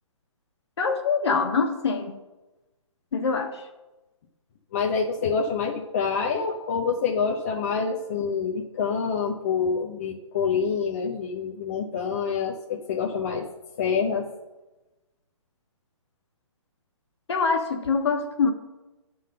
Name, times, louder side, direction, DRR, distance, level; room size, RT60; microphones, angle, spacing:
voice 1, 0.8-2.2 3.1-3.7 17.3-18.5, left 5 dB, 55° left, 4 dB, 1.5 m, -24 dB
voice 2, 4.7-13.4 13.8-14.3, left 5 dB, 30° left, 0 dB, 0.6 m, -26 dB
11.0 x 3.9 x 6.6 m, 1.1 s
hypercardioid pair, 165°, 16 cm